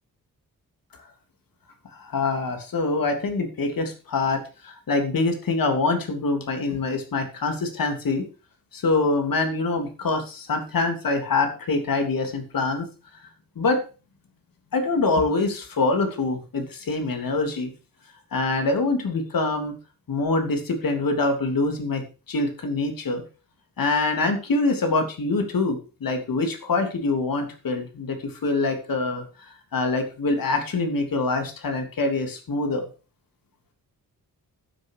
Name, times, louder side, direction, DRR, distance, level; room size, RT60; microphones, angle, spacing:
voice 1, 1.9-8.3 8.7-12.9 13.5-13.8 14.7-17.7 18.3-19.7 20.1-22.0 22.3-23.2 23.8-32.9, left 3 dB, 75° left, 5 dB, 3.1 m, -25 dB
12.5 x 7.8 x 4.9 m, 0.33 s
wide cardioid pair, 160°, 34 cm